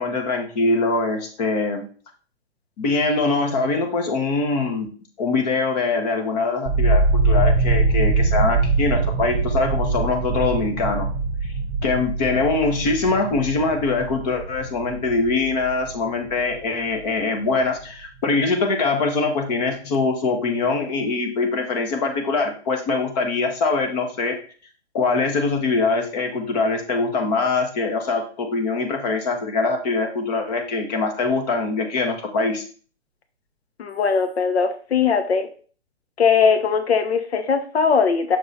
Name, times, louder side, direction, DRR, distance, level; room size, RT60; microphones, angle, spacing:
voice 1, 0.0-1.9 2.8-4.9 5.2-11.1 11.8-24.4 24.9-32.6, left 3 dB, 35° left, 4 dB, 1.5 m, -23 dB
sound 1, 6.7-16.6 16.9-17.7, right 3 dB, 30° right, 0.9 m, -23 dB
voice 2, 33.8-35.5 36.2-38.4, left 6 dB, 65° left, 8 dB, 1.1 m, -20 dB
6.5 x 3.9 x 4.1 m, 0.41 s
figure-of-eight pair, 130°, 33 cm